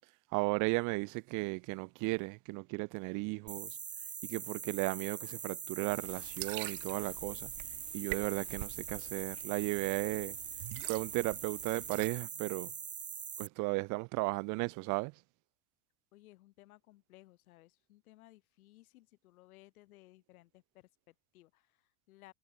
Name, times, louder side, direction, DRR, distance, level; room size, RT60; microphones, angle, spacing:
voice 1, 0.3-3.8 4.3-7.5 7.9-10.4 10.9-12.7 13.4-15.1, right 28 dB, 45° right, 0.6 m, -35 dB
sound 1, 3.5-13.5, right 7 dB, 20° right, 1.0 m, -43 dB
sound 2, 5.9-12.1, right 31 dB, 65° right, 1.1 m, -46 dB
voice 2, 16.1-22.3, left 17 dB, 85° left, 2.3 m, -60 dB
supercardioid pair, 125°, 42 cm